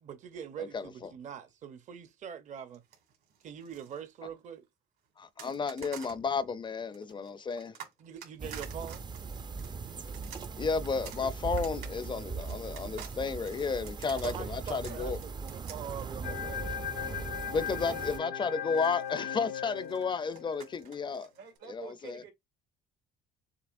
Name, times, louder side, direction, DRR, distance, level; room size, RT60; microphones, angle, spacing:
voice 1, 0.0-2.8 3.4-4.6 8.0-9.0 14.2-16.7, right 8 dB, 45° right, 0.7 m, -43 dB
voice 2, 0.6-0.9 5.2-7.8 10.6-15.2 17.5-21.3 21.7-22.2, left 5 dB, 30° left, 0.4 m, -33 dB
sound 1, 2.7-4.0 5.4-6.2 6.9-17.5 18.6-21.6, right 8 dB, 70° right, 2.3 m, -50 dB
sound 2, 8.4-18.2, right 5 dB, 25° right, 0.4 m, -40 dB
sound 3, 16.2-20.7, left 9 dB, 85° left, 0.8 m, -38 dB
voice 3, 17.7-18.1 21.4-22.3, right 7 dB, 85° right, 1.8 m, -47 dB
6.8 x 2.8 x 2.5 m
cardioid pair, 110°, 17 cm